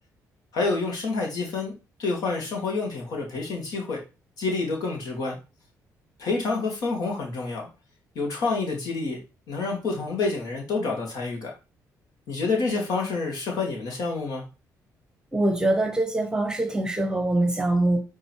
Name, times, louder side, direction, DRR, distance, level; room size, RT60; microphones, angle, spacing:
voice 1, 0.5-1.7 2.0-4.0 4.4-5.4 6.2-7.7 8.1-9.2 9.5-11.5 12.3-14.4, left 3 dB, 75° left, 2.4 m, -28 dB
voice 2, 15.3-18.0, right 2 dB, 10° right, 0.9 m, -23 dB
10.0 x 3.7 x 4.7 m
cardioid pair, 125°, 6 cm